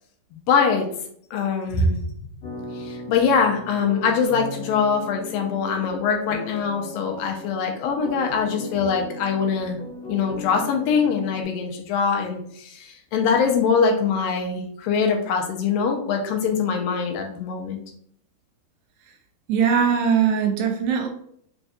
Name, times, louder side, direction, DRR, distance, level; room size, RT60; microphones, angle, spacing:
voice 1, 0.5-0.9 1.3-2.0 2.8-9.8 10.1-17.8, left 5 dB, 85° left, 2 dB, 2.3 m, -23 dB
sound 1, 2.4-11.4, left 2 dB, 65° left, 2.7 m, -37 dB
voice 2, 19.5-21.1, right 7 dB, 85° right, 3 dB, 2.4 m, -20 dB
5.6 x 2.6 x 2.3 m, 0.64 s
omnidirectional pair, 4.2 m